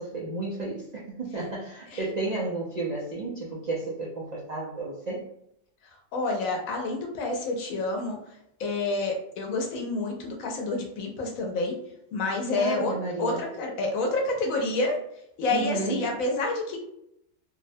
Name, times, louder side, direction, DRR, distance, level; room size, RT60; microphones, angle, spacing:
voice 1, 0.0-5.3 12.5-13.4 15.5-16.0, right 3 dB, 80° right, -5 dB, 0.3 m, -32 dB
voice 2, 6.1-8.2 8.6-11.8 12.1-12.9 13.2-15.0 15.4-16.8, left 2 dB, 90° left, 1 dB, 1.0 m, -28 dB
2.7 x 2.1 x 2.6 m, 0.76 s
omnidirectional pair, 1.4 m